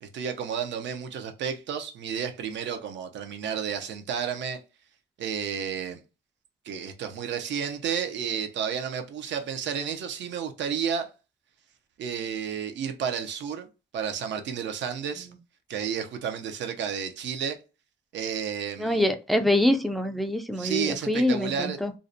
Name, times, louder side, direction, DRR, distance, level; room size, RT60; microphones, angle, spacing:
voice 1, 0.0-4.6 5.2-6.0 6.6-11.1 12.0-13.7 13.9-15.3 15.7-17.6 18.1-19.1 20.6-21.8, right 7 dB, 65° right, 0.6 m, -31 dB
voice 2, 18.8-21.9, left 1 dB, ahead, 0.3 m, -25 dB
2.5 x 2.1 x 2.6 m
cardioid pair, 90°, 20 cm